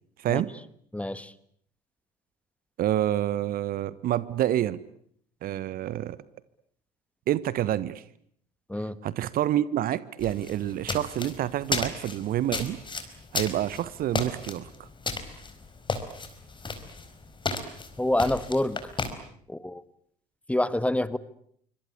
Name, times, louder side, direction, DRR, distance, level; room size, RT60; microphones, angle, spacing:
voice 1, 0.2-0.5 2.8-4.8 5.4-6.2 7.3-8.0 9.0-12.8 13.3-14.9, right 12 dB, 45° right, 19 dB, 1.2 m, -28 dB
voice 2, 0.9-1.3 8.7-9.0 18.0-18.8 19.5-19.8 20.5-21.2, left 1 dB, 5° left, 17 dB, 1.5 m, -27 dB
sound 1, 10.2-19.1, left 4 dB, 25° left, 4.5 m, -34 dB
26.5 x 25.0 x 8.5 m, 0.66 s
figure-of-eight pair, 55°, 20 cm